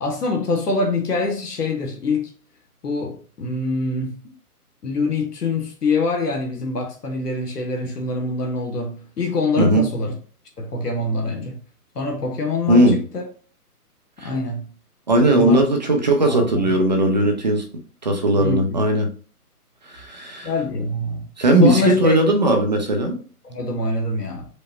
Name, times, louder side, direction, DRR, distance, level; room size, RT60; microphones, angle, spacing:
voice 1, 0.0-2.3 2.8-4.2 4.8-10.1 10.6-11.6 11.9-13.2 14.2-14.7 15.3-15.6 16.2-16.4 18.4-18.6 20.4-21.3 21.6-22.2 23.4-24.5, left 3 dB, 85° left, 1.2 m, -24 dB
voice 2, 9.6-9.9 12.7-13.0 14.2-14.3 15.1-17.7 18.0-19.1 19.9-20.5 21.4-23.2, right 1 dB, 30° right, 0.5 m, -17 dB
5.0 x 2.2 x 3.9 m
hypercardioid pair, 145°, 46 cm